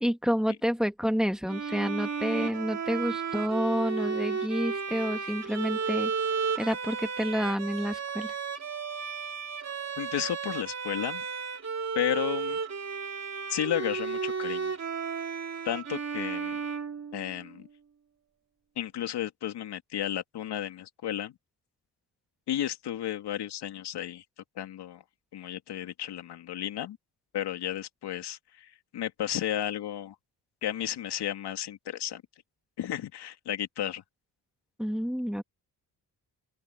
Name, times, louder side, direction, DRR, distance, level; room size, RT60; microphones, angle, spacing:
voice 1, 0.0-6.1 6.6-8.3 34.8-35.4, equal, ahead, 1.7 m, -29 dB
Bowed string instrument, 1.5-17.5, right 5 dB, 40° right, 3.3 m, -33 dB
voice 2, 10.0-11.2 11.9-12.6 13.5-14.7 15.6-16.6 17.1-17.7 18.8-21.3 22.5-24.2 24.6-25.0 25.3-27.0 27.3-30.1 30.6-32.2 32.8-34.0, left 11 dB, 80° left, 2.6 m, -33 dB
open air
cardioid pair, 85°, 40 cm